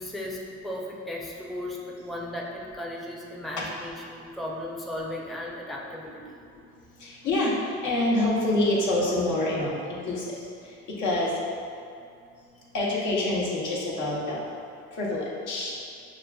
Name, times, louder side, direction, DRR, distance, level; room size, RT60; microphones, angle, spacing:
voice 1, 0.0-6.4, left 1 dB, ahead, -3 dB, 0.4 m, -36 dB
voice 2, 7.0-7.6 7.8-10.3 11.0-11.3 12.7-14.5 15.0-15.7, left 2 dB, 80° left, -5 dB, 0.9 m, -26 dB
6.0 x 2.5 x 2.2 m, 2.4 s
cardioid pair, 90°, 30 cm